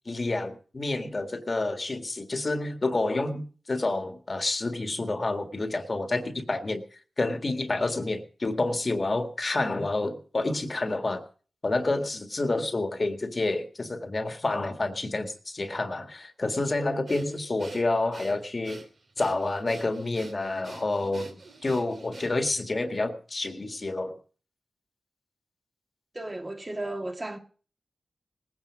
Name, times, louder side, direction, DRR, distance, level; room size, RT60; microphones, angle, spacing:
voice 1, 0.0-6.8 7.2-11.2 11.6-18.8 19.2-24.1, left 2 dB, 40° left, 1.7 m, -29 dB
Breathing, 17.1-22.6, right 3 dB, 65° right, 2.7 m, -47 dB
voice 2, 26.1-27.4, right 1 dB, 30° right, 1.9 m, -34 dB
19.0 x 9.6 x 5.0 m
cardioid pair, 60°, 0 cm